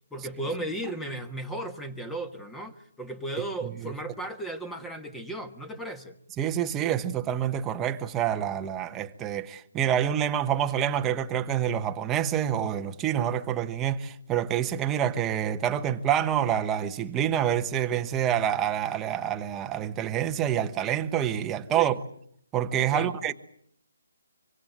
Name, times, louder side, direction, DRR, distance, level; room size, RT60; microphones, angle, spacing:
voice 1, 0.1-6.1 21.7-22.0 22.9-23.1, right 1 dB, 5° left, 1.4 m, -35 dB
voice 2, 6.4-22.0 22.5-23.3, right 10 dB, 10° right, 1.1 m, -27 dB
25.5 x 25.0 x 8.0 m
hypercardioid pair, 160°, 0 cm